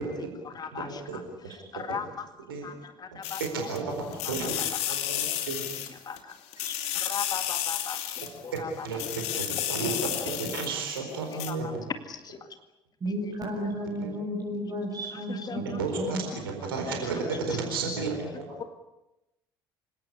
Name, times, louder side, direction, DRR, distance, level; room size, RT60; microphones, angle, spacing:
voice 1, 0.0-2.3 2.6-3.7 4.1-9.5 10.1-10.3 11.3-12.5 13.1-13.3 13.6-13.9 15.1-16.5 17.0-17.8 18.3-18.6, left 6 dB, 35° left, 9 dB, 2.0 m, -41 dB
voice 2, 0.7-1.2 1.4-1.6 2.5-2.7 3.4-4.6 4.9-5.6 8.8-11.8 14.0-14.1 15.8-16.2 16.4-18.4, right 4 dB, 75° right, 3 dB, 4.3 m, -32 dB
sound 1, 3.2-3.8 4.1-6.2 6.5-8.6 8.9-11.0 11.3-11.5, left 11 dB, 55° left, 2.6 m, -32 dB
voice 3, 13.0-16.2, equal, 30° right, -1 dB, 7.0 m, -33 dB
27.0 x 18.0 x 9.9 m, 0.94 s
figure-of-eight pair, 55°, 12 cm